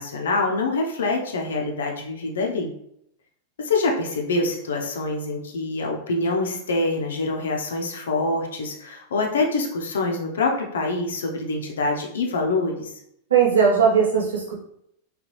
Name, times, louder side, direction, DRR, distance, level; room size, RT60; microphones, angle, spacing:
voice 1, 0.0-2.7 3.6-12.9, left 3 dB, 65° left, 1 dB, 0.7 m, -25 dB
voice 2, 13.3-14.5, right 6 dB, 70° right, -3 dB, 1.1 m, -18 dB
3.9 x 3.2 x 3.1 m, 0.73 s
figure-of-eight pair, 90°, 0 cm